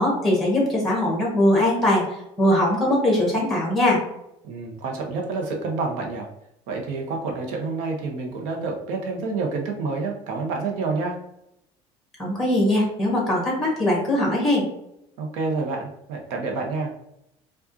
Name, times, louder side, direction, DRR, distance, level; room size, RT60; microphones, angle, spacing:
voice 1, 0.0-2.0 2.4-4.0 12.2-14.7, left 1 dB, ahead, -3 dB, 1.4 m, -21 dB
voice 2, 4.4-6.3 6.7-11.2 15.2-16.9, right 3 dB, 85° right, 1 dB, 0.9 m, -28 dB
4.8 x 2.5 x 2.7 m, 0.80 s
cardioid pair, 155°, 12 cm